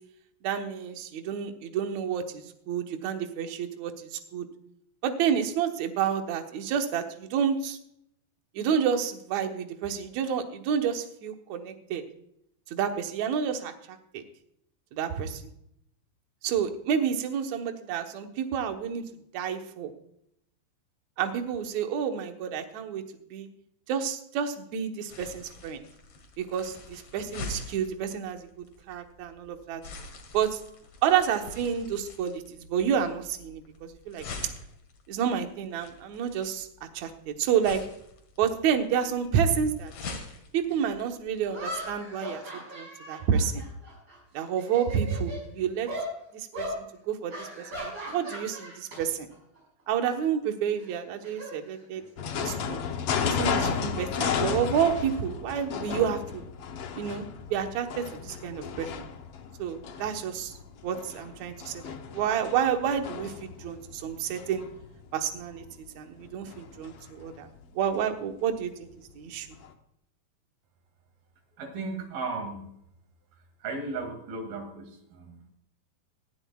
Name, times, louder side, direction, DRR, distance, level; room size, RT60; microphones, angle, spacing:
voice 1, 0.4-4.5 5.0-7.8 8.6-12.0 12.7-14.2 14.9-15.4 16.4-19.0 19.3-19.9 21.2-23.0 23.3-23.5 23.9-25.8 26.4-29.8 30.3-30.6 31.0-34.3 35.1-36.7 36.9-37.8 38.4-39.9 40.5-43.6 44.3-45.9 46.3-49.3 49.9-52.0 52.4-52.8 53.2-56.4 57.0-59.1 59.6-60.5 60.8-64.6 65.1-67.5 67.7-68.9 69.2-69.5, right 8 dB, 65° right, 5 dB, 2.1 m, -29 dB
sound 1, 25.1-41.9, left 3 dB, 50° left, 2.4 m, -45 dB
sound 2, 40.7-40.8 41.5-44.2 44.5-45.4 45.9-46.1 46.5-46.8 47.3-49.0 49.3-49.6 50.8-52.2, equal, 45° right, 6.6 m, -38 dB
sound 3, 52.2-67.6 68.0-68.2 68.5-68.6 68.8-68.9 69.6-69.7, left 7 dB, 70° left, 1.4 m, -34 dB
voice 2, 71.5-72.7 73.6-75.5, right 3 dB, 85° right, 4 dB, 4.1 m, -36 dB
19.5 x 11.5 x 2.3 m, 0.75 s
omnidirectional pair, 4.1 m